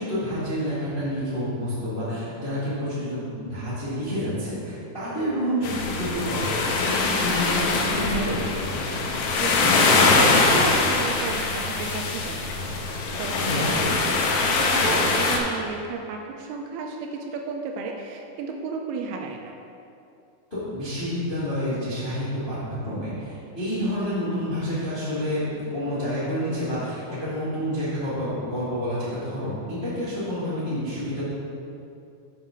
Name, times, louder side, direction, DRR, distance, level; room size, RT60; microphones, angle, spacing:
voice 1, 0.0-8.4 13.4-14.0 20.5-31.2, equal, 30° left, -11 dB, 1.0 m, -29 dB
sound 1, 5.6-15.4, left 3 dB, 80° left, 2.8 m, -23 dB
voice 2, 9.4-13.7 14.6-19.5, right 4 dB, 80° right, 2 dB, 2.4 m, -33 dB
7.3 x 5.8 x 5.9 m, 2.7 s
omnidirectional pair, 4.7 m